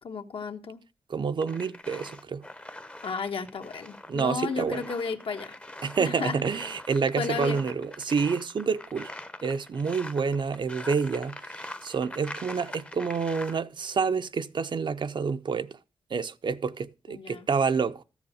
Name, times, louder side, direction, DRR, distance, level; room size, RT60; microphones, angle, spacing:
voice 1, 0.0-0.8 3.0-5.6 6.0-6.4 7.2-7.6 17.1-17.5, left 5 dB, 75° left, 1.3 m, -33 dB
voice 2, 1.1-2.5 4.1-4.8 5.8-9.1 9.4-15.8 16.1-18.0, right 5 dB, 55° right, 0.6 m, -28 dB
sound 1, 1.4-13.6, left 1 dB, 15° left, 0.7 m, -43 dB
13.5 x 7.2 x 6.3 m
wide cardioid pair, 165°, 9 cm